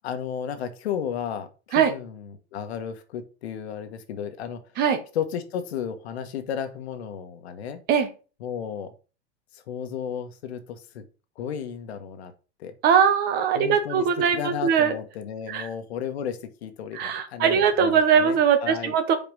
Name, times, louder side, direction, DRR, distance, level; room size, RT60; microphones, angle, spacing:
voice 1, 0.0-4.6 5.1-7.8 8.4-8.9 9.5-11.0 11.4-12.3 12.6-12.7 13.5-14.1 14.3-18.9, left 8 dB, 70° left, 8 dB, 1.5 m, -33 dB
voice 2, 12.8-15.0 15.5-15.7 16.9-19.1, right 7 dB, 30° right, 10 dB, 1.1 m, -21 dB
5.5 x 4.9 x 6.2 m, 0.35 s
supercardioid pair, 145°, 33 cm